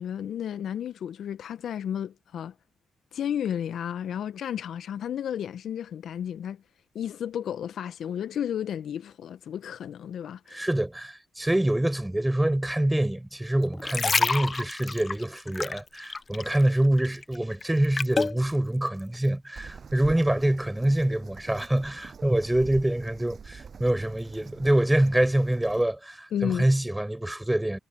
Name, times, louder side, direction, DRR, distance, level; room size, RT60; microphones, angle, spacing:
voice 1, 0.0-2.5 3.1-6.6 6.9-10.7 26.3-26.7, left 9 dB, 70° left, 1.2 m, -32 dB
voice 2, 10.5-27.8, right 1 dB, 10° right, 6.9 m, -25 dB
sound 1, 13.6-16.7 17.0-18.4 19.0-19.1, left 4 dB, 40° left, 0.7 m, -28 dB
Bird vocalization bird call bird song, 19.6-25.8, right 6 dB, 55° right, 8.0 m, -45 dB
hypercardioid pair, 40°, 0 cm